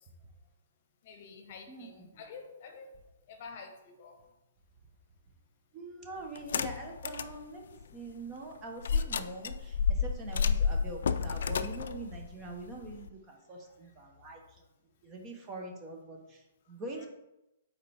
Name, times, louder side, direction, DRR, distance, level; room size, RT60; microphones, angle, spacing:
voice 1, 1.0-2.9 3.3-4.2 17.0-17.1, left 5 dB, 45° left, 0.9 m, -48 dB
voice 2, 1.7-2.2 5.7-14.6 15.0-17.1, right 2 dB, 20° right, 1.0 m, -44 dB
sound 1, 6.4-7.4 7.8-7.9 8.8-13.1, left 6 dB, 70° left, 0.4 m, -30 dB
6.6 x 4.4 x 3.5 m
hypercardioid pair, 160°, 0 cm